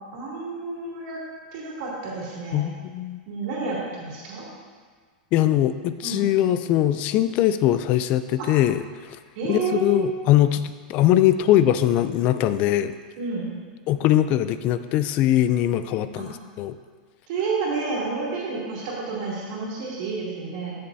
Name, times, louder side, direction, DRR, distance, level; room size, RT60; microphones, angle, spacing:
voice 1, 0.1-1.2 1.5-2.7 3.3-4.5 6.0-6.2 8.4-8.5 9.3-10.1 13.2-13.5 16.1-16.3 17.3-20.8, right 4 dB, 50° right, -6 dB, 2.8 m, -30 dB
voice 2, 2.5-3.2 5.3-8.8 9.5-12.9 13.9-16.8, left 12 dB, 30° left, 12 dB, 0.3 m, -21 dB
14.0 x 6.9 x 2.7 m, 1.6 s
supercardioid pair, 165°, 5 cm